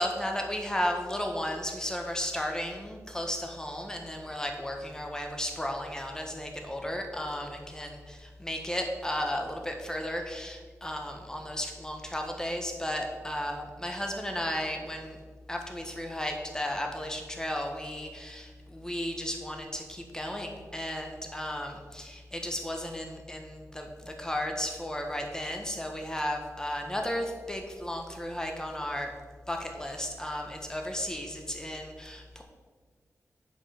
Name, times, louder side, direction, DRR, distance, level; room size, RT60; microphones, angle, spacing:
voice 1, 0.0-15.2 15.5-29.1 29.5-32.4, equal, 10° left, 3 dB, 1.4 m, -34 dB
7.7 x 5.4 x 5.8 m, 1.5 s
wide cardioid pair, 75°, 6 cm